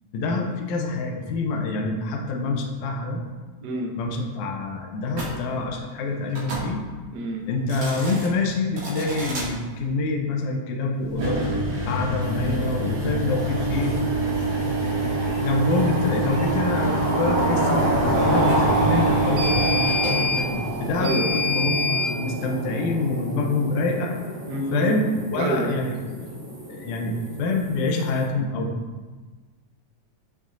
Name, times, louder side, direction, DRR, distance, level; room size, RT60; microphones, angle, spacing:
voice 1, 0.1-3.2 4.0-6.8 7.5-11.4 11.9-14.0 14.8-14.9 15.4-24.2 24.7-25.9 26.7-28.7, left 3 dB, 80° left, 1 dB, 2.2 m, -26 dB
voice 2, 3.6-3.9 7.1-7.4 21.0-21.4 24.5-24.9 25.3-25.7, right 2 dB, 80° right, 0 dB, 0.9 m, -27 dB
sound 1, 5.1-5.3 6.3-6.7 7.6-8.3 8.8-9.5 11.1-22.1, right 1 dB, 60° right, 3.2 m, -26 dB
sound 2, 12.2-28.2, right 1 dB, 10° right, 2.0 m, -29 dB
9.3 x 6.6 x 2.6 m, 1.3 s
omnidirectional pair, 3.4 m